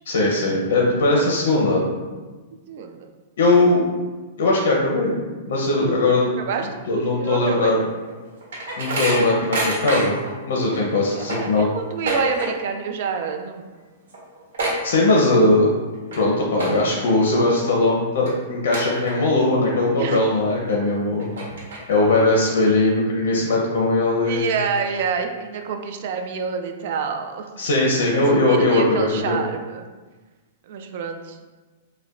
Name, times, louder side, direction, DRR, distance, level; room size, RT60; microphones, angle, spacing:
voice 1, 0.1-1.9 3.4-3.9 4.4-6.3 6.9-7.8 8.8-10.2 10.4-11.7 14.8-15.7 16.2-21.3 21.9-24.5 27.6-29.4, left 2 dB, 70° left, -2 dB, 0.7 m, -19 dB
voice 2, 2.7-3.1 6.3-7.9 11.1-13.7 15.1-15.3 20.0-20.2 24.3-27.5 28.5-29.8 30.7-31.4, right 6 dB, 50° right, 5 dB, 0.3 m, -27 dB
sound 1, 7.9-10.3 10.7-10.8 11.1-12.8 13.1-13.4 13.7-13.8 14.1-15.5 15.9-16.2 16.5-17.1 17.6-17.7 18.2-18.3 18.7-19.4 19.9-20.0 20.7-20.8 21.2-22.1, right 1 dB, 85° right, 1.1 m, -27 dB
4.8 x 2.2 x 2.4 m, 1.3 s
supercardioid pair, 165°, 0 cm